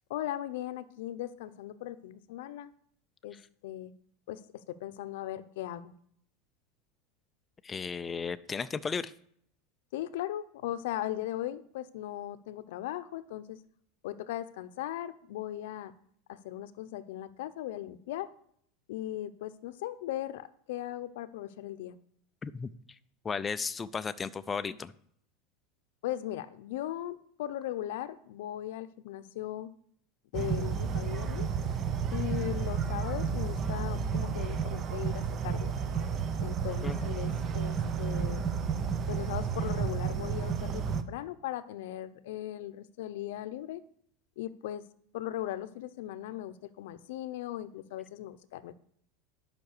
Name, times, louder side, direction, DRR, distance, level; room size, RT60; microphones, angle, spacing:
voice 1, 0.1-2.7 3.2-3.4 3.6-3.9 4.3-4.4 4.7-5.9 9.9-13.6 14.0-15.9 16.3-18.3 18.9-22.0 26.0-29.7 30.3-31.5 32.1-35.7 36.4-38.5 39.1-43.8 44.4-44.8 45.1-48.8, left 13 dB, 75° left, 13 dB, 0.7 m, -38 dB
voice 2, 7.6-9.1 22.4-22.7 23.2-24.9 36.8-37.1, left 5 dB, 15° left, 14 dB, 0.4 m, -34 dB
sound 1, 30.3-41.0, right 6 dB, 25° right, 0.7 m, -31 dB
10.5 x 5.9 x 6.6 m, 0.65 s
supercardioid pair, 160°, 0 cm